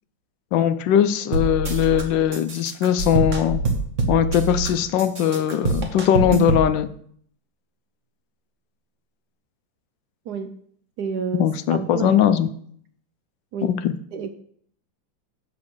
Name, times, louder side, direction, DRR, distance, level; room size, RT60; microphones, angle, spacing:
voice 1, 0.5-3.6 4.1-6.9 11.3-12.5 13.6-13.9, left 10 dB, 75° left, 12 dB, 1.2 m, -20 dB
sound 1, 1.3-2.0 2.3-4.7 5.0-6.7, right 3 dB, 45° right, 1.5 m, -24 dB
voice 2, 10.3-10.6 11.0-12.2 13.5-13.8 14.1-14.3, right 6 dB, 70° right, 9 dB, 1.0 m, -30 dB
7.4 x 6.1 x 6.2 m, 0.62 s
omnidirectional pair, 2.1 m